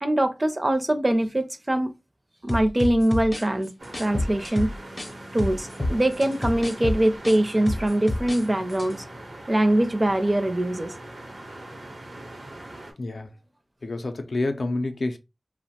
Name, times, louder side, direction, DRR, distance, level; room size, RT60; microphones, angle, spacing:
voice 1, 0.0-1.9 2.4-3.7 4.0-4.7 5.3-9.0 9.5-10.9, right 1 dB, 35° right, 0.4 m, -23 dB
sound 1, 2.5-5.1 5.4-8.4 8.7-8.9, left 1 dB, 35° left, 0.5 m, -29 dB
sound 2, 3.8-12.9, right 1 dB, 85° right, 0.7 m, -41 dB
voice 2, 13.0-13.3 13.8-15.2, left 2 dB, 85° left, 0.4 m, -28 dB
2.8 x 2.0 x 2.7 m
wide cardioid pair, 65°, 0 cm